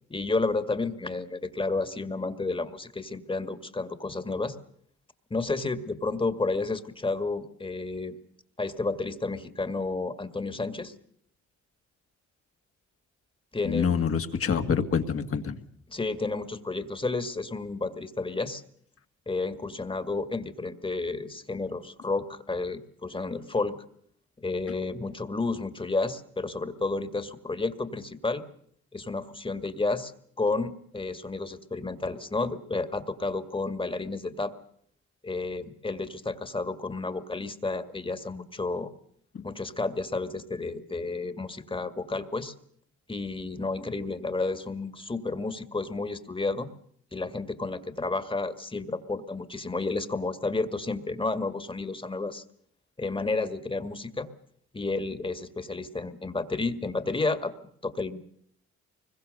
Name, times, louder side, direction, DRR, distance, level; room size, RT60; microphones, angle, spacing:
voice 1, 0.1-4.6 5.3-8.2 8.6-10.9 13.5-13.9 15.9-18.6 19.3-23.8 24.4-28.4 28.9-30.1 30.4-34.5 35.2-38.9 39.4-42.5 43.1-46.7 47.1-52.4 53.0-54.3 54.7-57.5 57.8-58.2, left 3 dB, 15° left, 10 dB, 2.0 m, -31 dB
voice 2, 13.6-15.6 39.4-39.5, left 6 dB, 50° left, 7 dB, 2.1 m, -26 dB
24.5 x 22.0 x 6.7 m, 0.64 s
cardioid pair, 90°, 30 cm